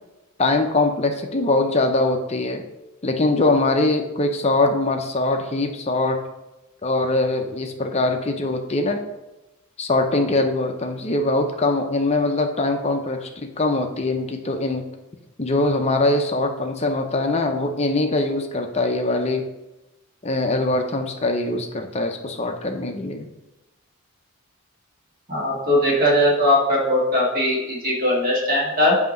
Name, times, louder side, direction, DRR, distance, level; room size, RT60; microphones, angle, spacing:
voice 1, 0.4-2.6 3.0-6.2 6.8-9.0 9.8-13.3 13.6-14.8 15.4-19.5 20.2-23.3, left 2 dB, 30° left, 5 dB, 0.5 m, -22 dB
voice 2, 25.3-29.0, left 1 dB, 40° right, -4 dB, 1.7 m, -19 dB
7.9 x 2.8 x 5.2 m, 1.0 s
head